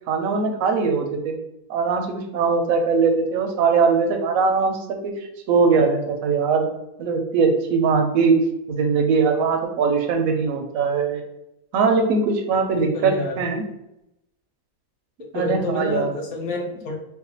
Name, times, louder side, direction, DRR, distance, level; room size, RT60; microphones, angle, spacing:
voice 1, 0.1-1.4 1.7-6.7 7.0-8.4 8.7-11.2 11.7-13.6 15.3-16.1, right 5 dB, 70° right, 5 dB, 0.9 m, -21 dB
voice 2, 12.9-13.4 15.3-17.0, left 2 dB, 65° left, 2 dB, 1.1 m, -28 dB
4.6 x 2.1 x 2.7 m, 0.86 s
omnidirectional pair, 1.8 m